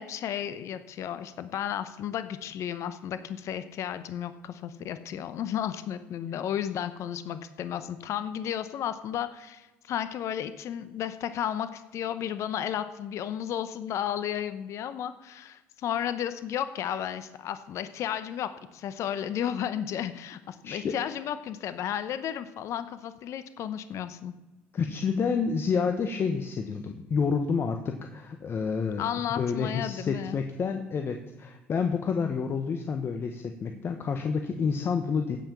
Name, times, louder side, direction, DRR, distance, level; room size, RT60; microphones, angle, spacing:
voice 1, 0.0-24.3 29.0-30.4, left 10 dB, 60° left, 12 dB, 0.8 m, -33 dB
voice 2, 20.6-21.0 24.7-29.0 29.3-35.4, left 5 dB, 45° left, 6 dB, 1.2 m, -29 dB
16.0 x 5.9 x 7.0 m, 1.1 s
supercardioid pair, 70°, 6 cm